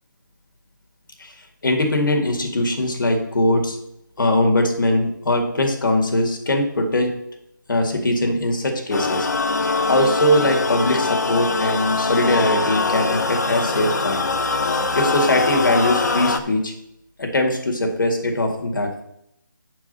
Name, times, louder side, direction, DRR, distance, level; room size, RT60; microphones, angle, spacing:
voice 1, 1.6-3.8 4.2-7.1 7.7-9.3 9.9-14.2 14.9-16.7 17.2-19.0, left 1 dB, 70° left, 3 dB, 2.1 m, -21 dB
sound 1, 8.9-16.4, left 3 dB, 55° left, 0.9 m, -22 dB
9.1 x 4.9 x 5.4 m, 0.79 s
hypercardioid pair, 170°, 11 cm